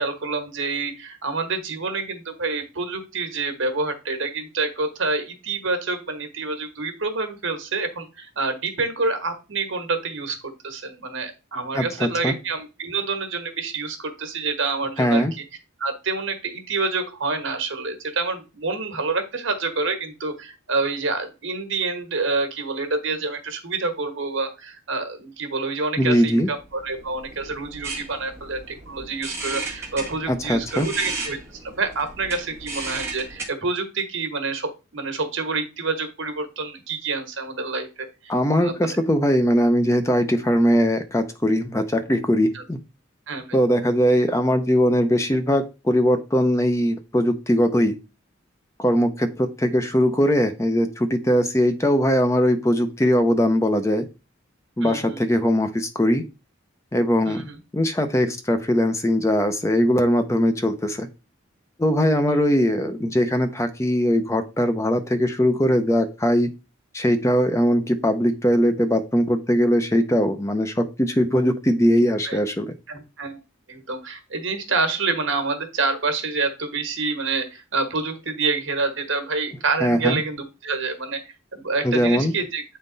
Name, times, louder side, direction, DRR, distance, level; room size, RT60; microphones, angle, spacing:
voice 1, 0.0-15.4 15.8-38.3 38.6-39.0 42.5-42.6 43.3-43.6 54.8-55.2 57.2-57.6 62.3-62.4 72.2-72.4 72.9-73.4 73.7-82.6, right 3 dB, 70° right, 7 dB, 1.4 m, -27 dB
voice 2, 11.7-12.3 15.0-15.3 26.0-26.5 30.3-30.9 38.3-42.8 43.5-48.0 48.8-54.1 54.8-56.2 56.9-57.5 57.7-61.1 61.8-66.5 66.9-72.7 79.8-80.2 81.8-82.3, equal, 15° left, 8 dB, 0.5 m, -20 dB
sound 1, 26.6-33.4, right 3 dB, 15° right, 1.6 m, -35 dB
8.4 x 3.8 x 3.9 m, 0.29 s
head